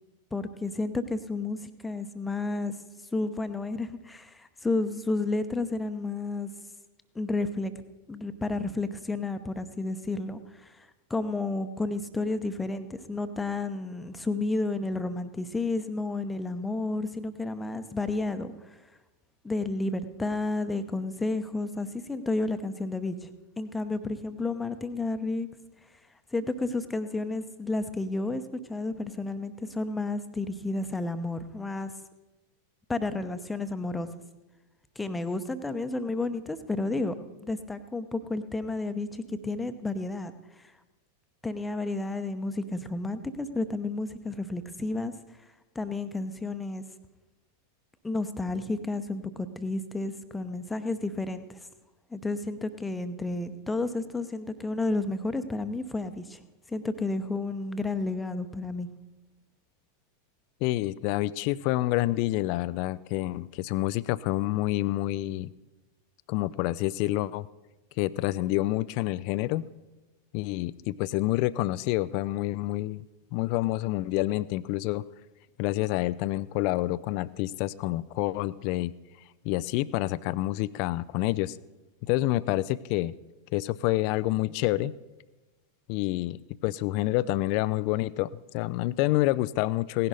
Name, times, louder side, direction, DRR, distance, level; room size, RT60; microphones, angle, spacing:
voice 1, 0.3-2.7 3.1-6.5 7.1-7.7 8.1-18.5 19.4-23.3 23.6-25.5 26.3-31.9 32.9-34.1 35.0-37.1 37.4-40.3 40.6-40.7 41.4-45.1 45.7-46.8 48.0-51.6 52.1-56.4 56.7-58.9, left 2 dB, 10° left, 10 dB, 0.8 m, -31 dB
voice 2, 60.6-65.5 66.3-67.5 68.0-69.6 70.3-73.0 73.3-75.0 75.6-78.9 79.4-81.6 82.0-83.1 83.5-84.9 85.9-90.1, left 17 dB, 45° left, 19 dB, 0.4 m, -28 dB
17.0 x 11.0 x 4.1 m, 1.1 s
figure-of-eight pair, 90°, 0 cm